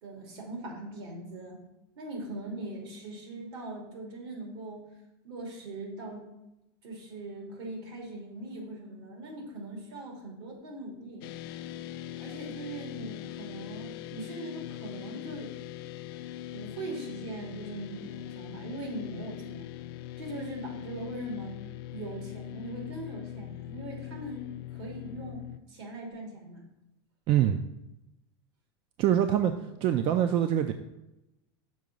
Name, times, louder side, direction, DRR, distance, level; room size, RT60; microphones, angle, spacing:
voice 1, 0.0-1.6 2.0-4.9 5.2-6.3 6.8-11.3 12.2-15.5 16.5-19.7 20.2-21.6 21.9-26.7, right 2 dB, 75° right, -1 dB, 2.8 m, -41 dB
sound 1, 11.2-25.6, left 13 dB, 65° left, 0.4 m, -41 dB
voice 2, 27.3-27.6 29.0-30.7, right 10 dB, 40° right, 8 dB, 0.4 m, -25 dB
6.3 x 4.8 x 5.3 m, 0.92 s
supercardioid pair, 125°, 13 cm